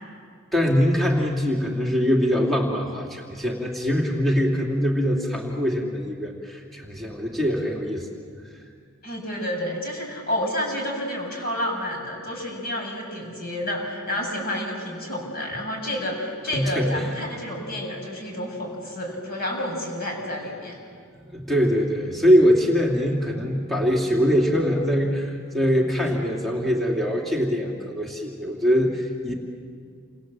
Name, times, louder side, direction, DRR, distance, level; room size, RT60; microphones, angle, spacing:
voice 1, 0.5-8.1 16.5-17.2 21.2-29.3, equal, ahead, -2 dB, 2.8 m, -23 dB
voice 2, 9.0-20.8, left 1 dB, 45° left, 0 dB, 6.9 m, -30 dB
29.0 x 26.5 x 7.6 m, 2.2 s
head